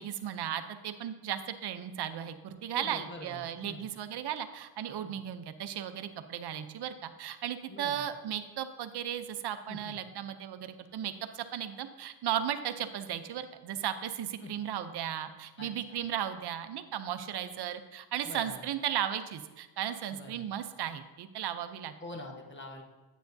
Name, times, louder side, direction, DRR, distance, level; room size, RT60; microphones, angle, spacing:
voice 1, 0.0-21.9, right 10 dB, 60° right, 10 dB, 0.6 m, -36 dB
voice 2, 2.7-3.8 5.0-5.2 7.7-8.0 9.7-10.0 14.4-14.7 15.6-16.0 18.2-18.6 20.1-20.4 22.0-22.8, left 1 dB, 25° left, 2 dB, 1.1 m, -45 dB
9.2 x 8.2 x 2.6 m, 1.2 s
cardioid pair, 140°, 46 cm